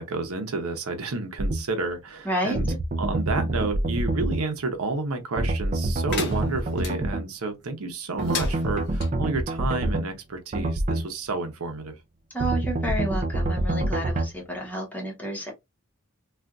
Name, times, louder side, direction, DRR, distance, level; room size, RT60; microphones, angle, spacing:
voice 1, 0.0-2.7 3.0-12.0, right 3 dB, 85° right, 0.8 m, -30 dB
sound 1, 1.4-1.6 2.5-4.4 5.4-7.2 8.2-10.1 10.5-11.1 12.4-14.3, right 1 dB, 35° right, 0.4 m, -26 dB
voice 2, 2.2-2.6 12.3-15.5, right 1 dB, 5° left, 1.1 m, -30 dB
sound 2, 6.1-6.9 8.2-9.1, left 5 dB, 50° left, 0.8 m, -35 dB
3.4 x 2.4 x 2.5 m
head